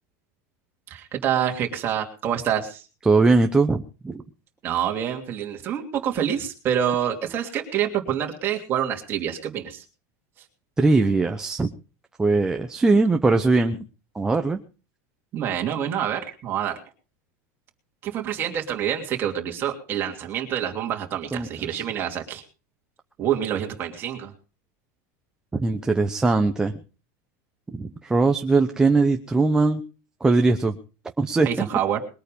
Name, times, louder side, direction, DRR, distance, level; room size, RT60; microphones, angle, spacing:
voice 1, 0.9-2.9 4.6-9.8 10.4-10.5 15.3-16.8 18.0-22.4 23.2-24.3 31.4-32.0, right 9 dB, 25° right, 2 dB, 2.9 m, -27 dB
voice 2, 3.1-4.2 10.8-11.7 12.2-13.8 14.1-14.6 21.3-21.8 25.5-26.7 27.7-29.8 30.2-30.8 31.2-31.5, right 3 dB, 5° right, 4 dB, 0.8 m, -20 dB
21.5 x 9.1 x 5.3 m, 0.35 s
supercardioid pair, 170°, 9 cm